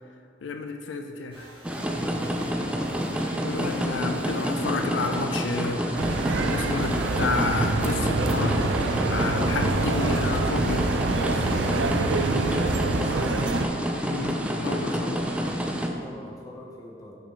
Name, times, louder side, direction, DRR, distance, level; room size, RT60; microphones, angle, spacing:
voice 1, 0.4-1.5 2.6-2.7 3.4-8.7 9.1-10.9 14.0-15.3, left 3 dB, 80° left, 5 dB, 0.4 m, -30 dB
sound 1, 1.3-11.7, right 1 dB, 30° right, 1.6 m, -42 dB
sound 2, 1.6-15.9, equal, 5° right, 0.4 m, -28 dB
sound 3, 5.9-13.7, right 3 dB, 80° right, 0.5 m, -26 dB
voice 2, 11.8-13.5 16.0-17.2, equal, 20° left, -2 dB, 1.0 m, -43 dB
6.1 x 5.3 x 4.1 m, 2.4 s
head